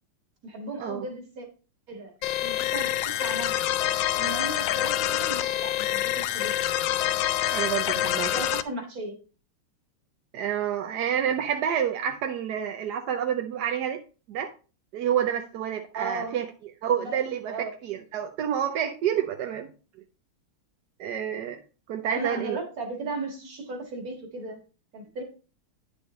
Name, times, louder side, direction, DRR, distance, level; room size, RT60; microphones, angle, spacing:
voice 1, 0.4-1.5 1.9-3.6 4.1-6.6 8.3-9.2 15.9-16.4 17.0-17.7 22.1-24.6 24.9-25.2, right 2 dB, 45° right, 3 dB, 2.2 m, -36 dB
sound 1, 2.2-8.6, left 12 dB, 75° left, 1.1 m, -26 dB
voice 2, 7.5-8.3 10.3-14.0 14.3-14.5 14.9-16.4 16.8-17.5 17.8-19.7 21.0-21.6 21.9-22.6, right 9 dB, 65° right, 5 dB, 1.1 m, -28 dB
9.7 x 7.0 x 3.1 m, 0.35 s
omnidirectional pair, 2.3 m